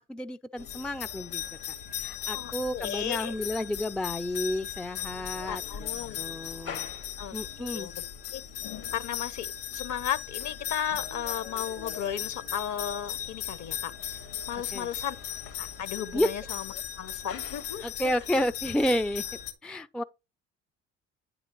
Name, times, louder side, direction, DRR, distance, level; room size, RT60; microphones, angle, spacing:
voice 1, 0.1-1.7 2.0-5.9 6.2-6.9 7.3-7.9 14.7-14.9 16.1-16.3 17.8-19.2 19.6-20.0, left 1 dB, ahead, 0.4 m, -31 dB
sound 1, 0.6-19.5, left 10 dB, 70° left, 2.1 m, -38 dB
voice 2, 2.3-3.3 5.4-6.2 7.2-7.3 7.6-7.9 8.3-8.4 8.9-9.5 9.7-13.9 14.5-15.2 15.6-17.9, left 9 dB, 50° left, 1.0 m, -34 dB
9.4 x 3.9 x 5.3 m
hypercardioid pair, 55°, 37 cm